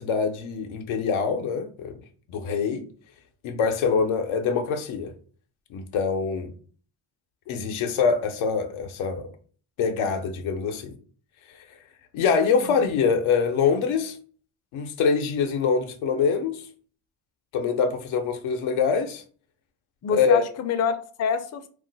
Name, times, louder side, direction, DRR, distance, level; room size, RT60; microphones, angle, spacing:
voice 1, 0.0-2.0 2.3-2.8 3.4-5.1 5.7-6.5 7.5-9.3 9.8-10.9 12.1-14.2 14.7-16.6 17.5-19.2 20.1-20.4, left 5 dB, 85° left, 0.6 m, -24 dB
voice 2, 20.0-21.7, left 6 dB, 35° left, 0.4 m, -27 dB
2.4 x 2.1 x 3.8 m
cardioid pair, 60°, 48 cm